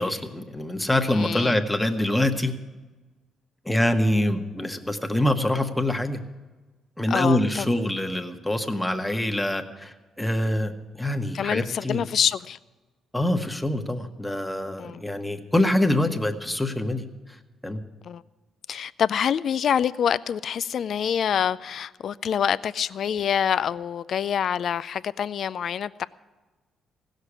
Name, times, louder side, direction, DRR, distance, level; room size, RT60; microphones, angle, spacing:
voice 1, 0.0-2.5 3.6-6.2 7.0-12.0 13.1-17.0 17.6-17.8, left 1 dB, 5° left, 1.2 m, -25 dB
voice 2, 1.1-1.6 7.1-7.7 11.3-12.6 14.8-15.0 18.0-18.2 18.7-26.1, left 8 dB, 60° left, 0.3 m, -26 dB
16.0 x 6.5 x 9.7 m
cardioid pair, 90°, 0 cm